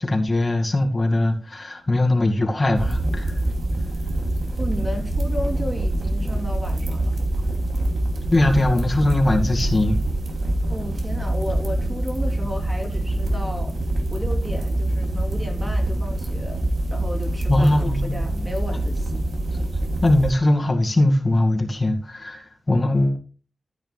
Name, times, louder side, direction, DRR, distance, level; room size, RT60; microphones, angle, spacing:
voice 1, 0.0-3.3 8.3-10.0 17.5-18.2 19.1-19.2 20.0-23.2, left 1 dB, 30° left, 2.1 m, -20 dB
sound 1, 2.7-20.3, right 1 dB, 65° right, 2.9 m, -25 dB
voice 2, 4.6-7.1 10.6-13.7 14.1-17.7 18.0-19.2, left 1 dB, 15° right, 3.4 m, -33 dB
14.5 x 8.8 x 2.3 m
wide cardioid pair, 115°, 0 cm